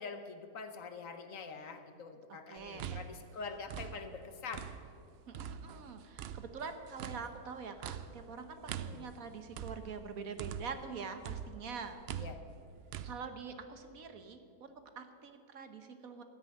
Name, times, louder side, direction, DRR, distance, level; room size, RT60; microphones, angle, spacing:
voice 1, 0.0-4.7 8.8-9.1 12.1-12.4, left 5 dB, 60° left, 8 dB, 1.3 m, -45 dB
voice 2, 2.3-2.9 5.3-12.0 13.0-16.2, right 5 dB, 65° right, 8 dB, 1.4 m, -45 dB
sound 1, 2.6-5.0 5.3-10.9 11.2-13.1, right 8 dB, 85° right, 0.5 m, -44 dB
13.0 x 10.5 x 9.3 m, 2.4 s
omnidirectional pair, 1.7 m